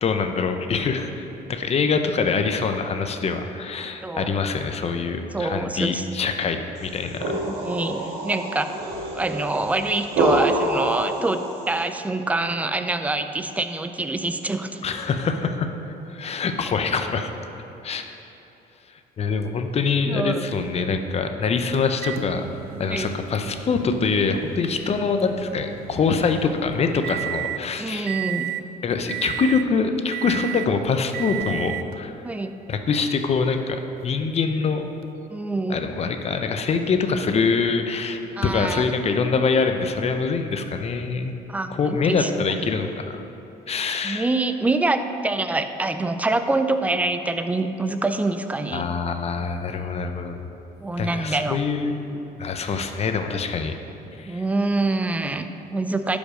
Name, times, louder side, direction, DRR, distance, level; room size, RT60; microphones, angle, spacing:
voice 1, 0.0-7.3 14.8-15.7 16.1-17.3 17.8-18.0 19.2-22.4 22.8-28.1 28.8-32.1 32.7-34.9 35.7-41.3 41.7-43.2 43.7-44.3 48.7-50.4 51.0-53.7 54.2-54.4, left 5 dB, 40° left, 6 dB, 0.6 m, -24 dB
voice 2, 4.0-4.4 5.3-6.0 7.3-8.7 9.2-14.9 20.0-20.4 22.9-23.1 27.8-28.5 32.2-32.5 35.3-35.8 38.4-38.8 41.5-42.3 42.6-42.7 44.0-48.9 50.8-51.6 54.3-56.2, right 2 dB, 10° right, 9 dB, 0.4 m, -25 dB
sound 1, 6.8-11.8, right 1 dB, 85° right, 1.6 m, -27 dB
Microwave oven, 22.0-27.7 28.1-28.7 29.1-29.7 30.1-30.7 31.1-32.0 32.9-33.0 35.0-35.1, right 14 dB, 65° right, 0.4 m, -33 dB
11.0 x 5.3 x 5.0 m, 2.8 s
cardioid pair, 110°, 17 cm